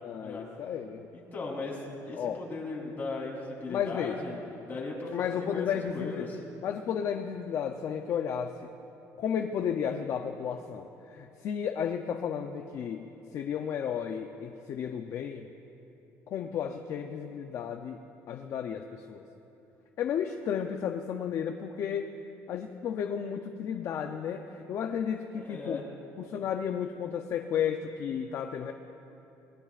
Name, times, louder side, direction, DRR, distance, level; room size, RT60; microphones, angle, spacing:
voice 1, 0.0-1.1 2.2-2.4 3.7-4.2 5.1-6.3 6.6-8.6 9.2-15.5 16.3-18.0 18.3-19.2 20.0-22.1 22.5-25.8 26.2-28.7, left 8 dB, 50° left, 5 dB, 0.6 m, -33 dB
voice 2, 1.1-5.7 5.9-6.4 25.3-25.9, left 3 dB, 30° left, -3 dB, 3.6 m, -37 dB
23.5 x 20.5 x 2.5 m, 3.0 s
cardioid pair, 145°, 6 cm